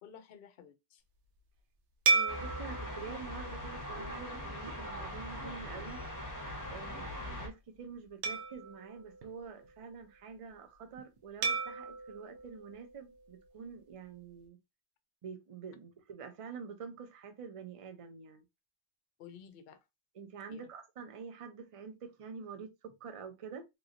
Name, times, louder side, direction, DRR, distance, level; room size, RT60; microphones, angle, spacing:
voice 1, 0.0-1.0 6.8-7.2 19.2-19.8 20.5-20.7, left 8 dB, 60° left, 0.7 m, -53 dB
voice 2, 2.1-6.0 6.7-14.6 15.2-18.4 20.1-23.7, right 6 dB, 45° right, 0.5 m, -47 dB
sound 1, 2.1-4.7 5.3-5.5 8.2-10.0 11.4-13.7, right 3 dB, 70° right, 0.9 m, -36 dB
sound 2, 2.3-7.5, left 1 dB, 20° left, 0.8 m, -41 dB
3.3 x 3.0 x 2.5 m
omnidirectional pair, 1.3 m